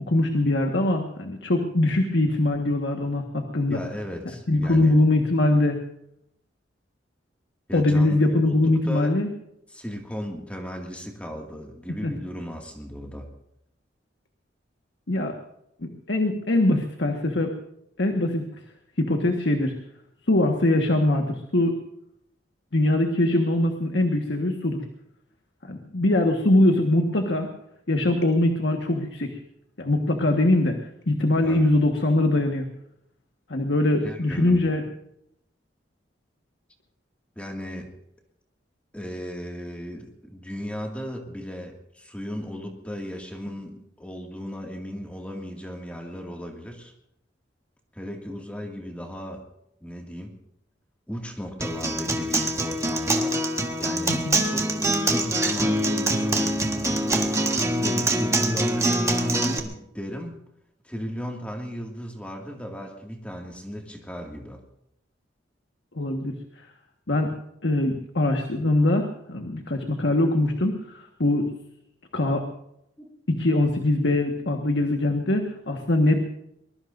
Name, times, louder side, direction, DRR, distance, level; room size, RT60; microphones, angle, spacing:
voice 1, 0.1-3.8 4.5-5.8 7.7-9.3 12.0-12.1 15.1-15.3 15.8-17.5 18.0-18.5 19.0-19.7 20.3-21.8 22.7-24.8 25.6-27.5 27.9-29.4 29.8-30.8 31.1-32.7 33.5-34.8 54.1-54.5 65.9-66.3 67.1-67.3 67.6-71.5 72.1-72.4 73.3-76.2, left 1 dB, 80° left, 3 dB, 1.6 m, -22 dB
voice 2, 3.7-5.0 7.7-9.2 9.7-13.3 31.4-31.7 34.0-34.7 37.4-37.9 38.9-46.9 47.9-49.4 49.8-50.4 51.1-53.4 53.8-57.0 57.6-60.3 60.8-64.6 73.0-73.2, equal, 10° left, 1 dB, 2.2 m, -36 dB
Acoustic guitar, 51.6-59.6, right 1 dB, 15° right, 1.5 m, -24 dB
23.5 x 21.0 x 2.7 m, 0.77 s
head